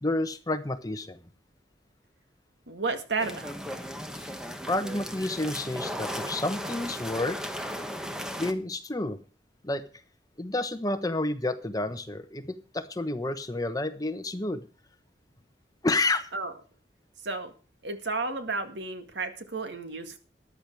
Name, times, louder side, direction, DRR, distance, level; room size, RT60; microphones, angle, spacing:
voice 1, 0.0-1.2 4.2-4.3 4.7-7.4 8.4-9.2 9.6-9.8 10.4-14.7 15.8-16.3, left 2 dB, 20° left, 10 dB, 1.0 m, -30 dB
voice 2, 2.7-3.5 16.3-16.5 17.2-17.5 17.8-20.2, right 3 dB, 80° right, 8 dB, 2.0 m, -32 dB
sound 1, 3.2-8.5, equal, 5° right, 1.1 m, -36 dB
14.0 x 10.5 x 4.7 m, 0.35 s
head